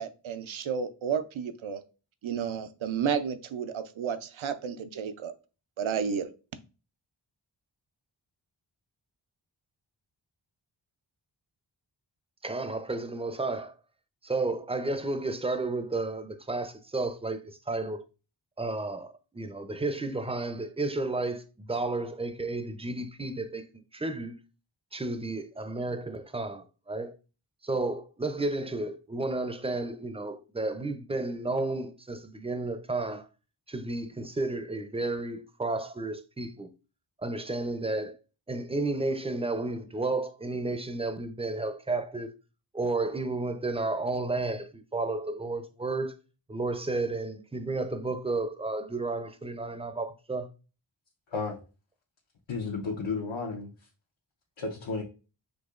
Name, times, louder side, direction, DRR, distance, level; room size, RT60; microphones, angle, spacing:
voice 1, 0.0-1.8 2.2-5.3 5.8-6.3, right 7 dB, 80° right, 0.6 m, -32 dB
voice 2, 12.4-13.7 14.2-18.0 18.6-23.6 23.9-24.4 24.9-27.1 27.6-33.3 33.7-36.7 37.2-38.1 38.5-42.3 42.7-46.2 46.5-50.5, right 2 dB, 15° right, 0.5 m, -32 dB
voice 3, 52.5-53.7 54.6-55.0, left 4 dB, 70° left, 0.9 m, -32 dB
6.4 x 2.8 x 2.4 m
wide cardioid pair, 55°, 47 cm